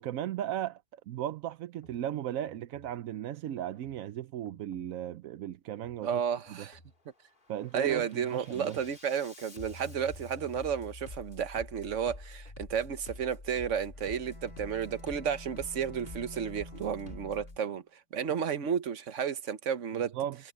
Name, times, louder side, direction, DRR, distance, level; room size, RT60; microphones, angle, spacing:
voice 1, 0.0-6.2 6.5-6.7 7.5-8.8 20.1-20.4, right 11 dB, 70° right, 0.8 m, -36 dB
Bass drum, 1.7-2.0 2.5-2.9 3.7-4.0 4.5-4.9 5.7-6.0 6.5-7.0 7.4-17.6, left 2 dB, 25° left, 2.2 m, -48 dB
voice 2, 6.0-6.8 7.7-20.2, right 7 dB, 45° right, 1.2 m, -32 dB
Bowed string instrument, 13.9-17.8, equal, 60° left, 6.6 m, -51 dB
omnidirectional pair, 2.0 m